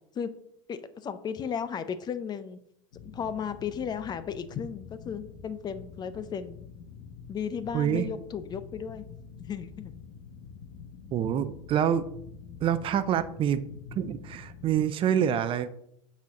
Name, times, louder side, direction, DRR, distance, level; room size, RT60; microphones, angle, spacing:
voice 1, 0.7-2.6 3.0-6.6 7.3-9.1 9.5-9.9, left 7 dB, 25° left, 12 dB, 0.5 m, -35 dB
sound 1, 2.9-14.8, left 6 dB, 75° left, 1.1 m, -47 dB
voice 2, 7.7-8.1 11.1-12.1 12.6-13.6 13.9-15.7, right 9 dB, 35° right, 12 dB, 0.5 m, -26 dB
5.9 x 4.3 x 6.4 m, 0.75 s
supercardioid pair, 120°, 16 cm